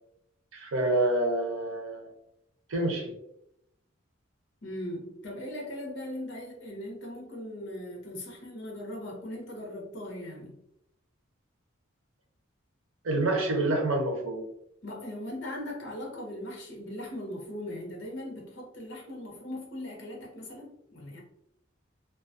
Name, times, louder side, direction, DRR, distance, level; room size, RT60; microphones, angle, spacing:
voice 1, 0.5-2.1 2.7-3.1 13.0-14.5, right 2 dB, 90° right, 2 dB, 0.6 m, -27 dB
voice 2, 4.6-10.6 14.8-21.2, left 1 dB, 60° left, -1 dB, 0.8 m, -39 dB
2.4 x 2.3 x 2.4 m, 0.79 s
head